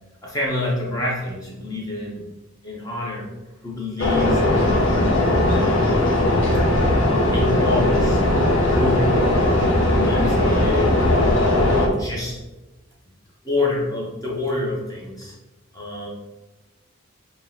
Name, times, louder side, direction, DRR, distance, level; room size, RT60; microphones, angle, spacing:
voice 1, 0.2-2.3 2.6-3.3 3.6-5.1 5.5-6.0 7.3-8.2 8.7-11.0 11.6-12.4 13.4-15.3 15.7-16.1, left 2 dB, 15° left, -4 dB, 0.6 m, -27 dB
sound 1, 4.0-11.9, left 1 dB, 70° left, 0.8 m, -18 dB
4.5 x 2.3 x 3.6 m, 1.1 s
head